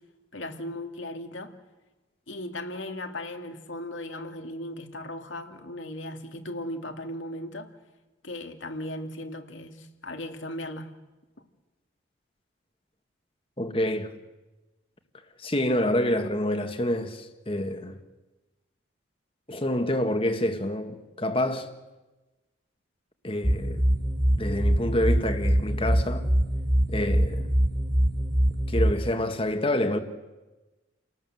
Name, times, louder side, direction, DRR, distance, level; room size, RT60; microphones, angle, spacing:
voice 1, 0.3-1.5 2.3-7.7 8.2-11.0, left 1 dB, 80° left, 2.5 m, -37 dB
voice 2, 13.6-14.1 15.4-17.9 19.5-21.7 23.2-23.8 24.4-26.3 26.9-27.5 28.7-30.0, left 1 dB, 30° left, 1.8 m, -27 dB
sound 1, 23.4-28.9, equal, 25° right, 3.3 m, -24 dB
29.5 x 18.5 x 7.8 m
head